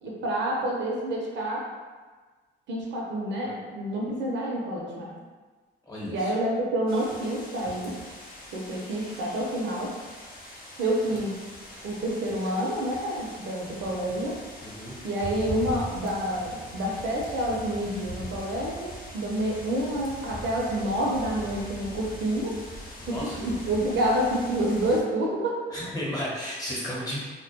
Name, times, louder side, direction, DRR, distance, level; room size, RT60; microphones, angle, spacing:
voice 1, 0.0-1.7 2.7-5.1 6.1-8.0 8.5-9.9 10.8-11.4 11.8-14.4 15.0-22.5 23.1-25.6, right 1 dB, 70° right, -2 dB, 0.6 m, -28 dB
voice 2, 5.9-6.3 14.6-14.9 23.0-23.4 25.7-27.3, equal, 20° left, -7 dB, 1.0 m, -33 dB
sound 1, 6.9-25.0, equal, 50° left, 0.6 m, -41 dB
2.2 x 2.1 x 2.7 m, 1.4 s
cardioid pair, 90°, 20 cm